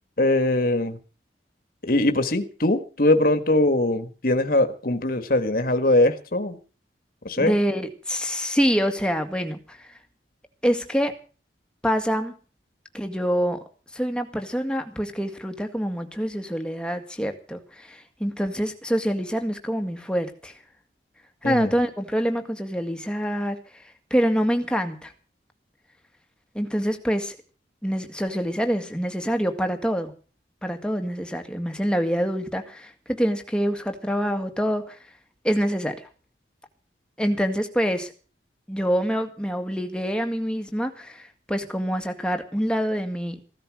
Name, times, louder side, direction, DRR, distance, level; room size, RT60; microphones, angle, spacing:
voice 1, 0.2-1.0 1.8-6.6 7.2-7.5 21.4-21.7, left 1 dB, 55° left, 1.6 m, -21 dB
voice 2, 7.4-9.9 10.6-11.1 11.8-12.3 12.9-13.6 13.9-20.5 21.4-23.6 24.1-25.1 26.5-27.4 27.8-30.1 30.6-35.0 35.4-36.1 37.2-38.1 38.7-43.4, equal, 5° left, 1.9 m, -26 dB
16.0 x 13.0 x 6.2 m
head